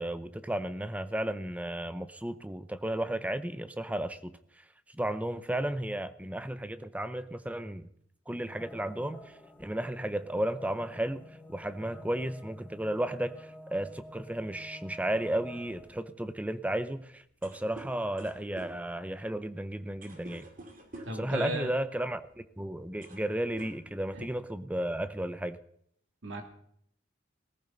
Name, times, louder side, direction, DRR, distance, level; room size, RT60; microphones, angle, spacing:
voice 1, 0.0-4.3 4.9-7.9 8.3-9.3 9.6-11.2 11.5-20.5 21.1-22.3 22.6-25.6, right 1 dB, 10° right, 12 dB, 0.6 m, -33 dB
sound 1, 8.3-16.0, left 1 dB, 10° left, 1.1 m, -50 dB
sound 2, 17.3-21.3 22.3-22.5 22.8-23.3 23.6-24.4, right 1 dB, 45° right, 2.4 m, -49 dB
voice 2, 21.0-21.7 24.1-24.3 26.2-26.4, right 1 dB, 70° right, 3 dB, 2.6 m, -35 dB
18.0 x 14.5 x 4.0 m, 0.68 s
head